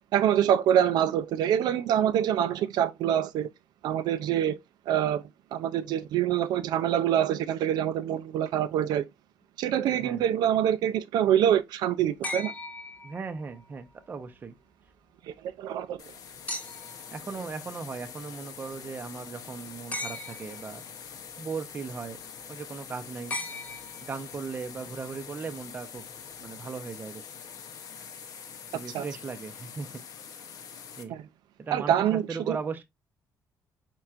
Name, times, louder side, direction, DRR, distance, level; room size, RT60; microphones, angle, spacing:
voice 1, 0.1-3.5 3.8-4.6 4.9-5.2 5.5-9.0 9.6-12.5 15.6-16.0 28.9-29.0 31.1-31.2 31.7-32.6, right 10 dB, 80° right, 0.4 m, -25 dB
sound 1, 12.2-13.6 16.5-17.1 19.9-20.7 23.3-24.3 25.9-26.0, left 2 dB, 20° left, 1.1 m, -37 dB
voice 2, 13.0-14.5 17.1-20.8 21.4-22.2 22.5-23.4 24.1-26.0 26.4-27.2 28.7-29.9 31.0-31.2 31.6-32.8, right 5 dB, 25° right, 0.6 m, -37 dB
sound 2, 16.0-31.0, left 7 dB, 60° left, 0.8 m, -45 dB
4.4 x 4.4 x 2.4 m
cardioid pair, 150°, 7 cm